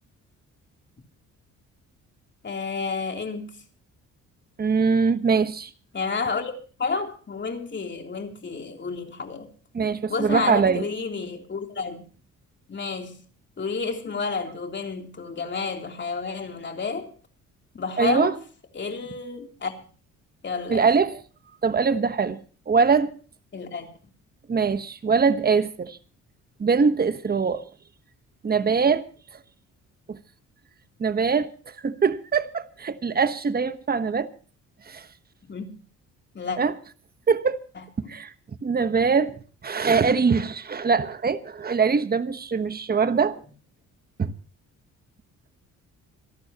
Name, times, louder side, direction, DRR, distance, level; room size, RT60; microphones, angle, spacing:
voice 1, 2.4-3.6 5.9-9.5 10.1-12.0 12.7-13.2 13.6-17.1 17.7-18.4 18.7-19.7 20.4-20.9 23.5-23.9 35.4-35.7 36.3-36.6 37.7-38.1, left 4 dB, 35° left, 3.4 m, -30 dB
voice 2, 4.6-5.7 9.7-10.8 18.0-18.3 20.7-21.2 21.6-23.1 24.5-26.0 26.6-27.7 28.4-29.1 30.1-30.2 31.0-34.3 34.8-35.1 36.6-36.7 37.3-37.6 38.1-38.3 38.6-39.4 39.6-43.4 44.2-44.3, right 5 dB, 30° right, 1.2 m, -22 dB
27.0 x 12.0 x 3.0 m
cardioid pair, 95°, 31 cm